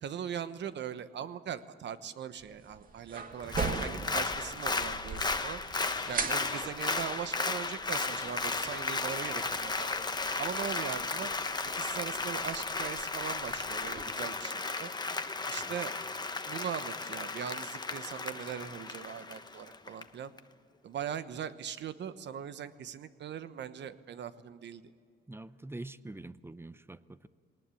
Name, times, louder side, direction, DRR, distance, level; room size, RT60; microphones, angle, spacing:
voice 1, 0.0-5.6 6.1-9.9 10.4-11.3 11.7-14.9 15.5-15.9 16.4-20.3 20.8-24.8, right 8 dB, 65° right, 1.1 m, -40 dB
sound 1, 2.4-14.0, right 4 dB, 45° right, 2.1 m, -42 dB
Applause, 3.4-20.0 20.4-20.5, left 3 dB, 20° left, 1.1 m, -35 dB
sound 2, 5.8-6.7 7.9-11.3, left 5 dB, 35° left, 1.5 m, -50 dB
voice 2, 25.3-27.3, right 2 dB, 10° right, 0.7 m, -45 dB
20.5 x 19.0 x 8.5 m
cardioid pair, 90°, 20 cm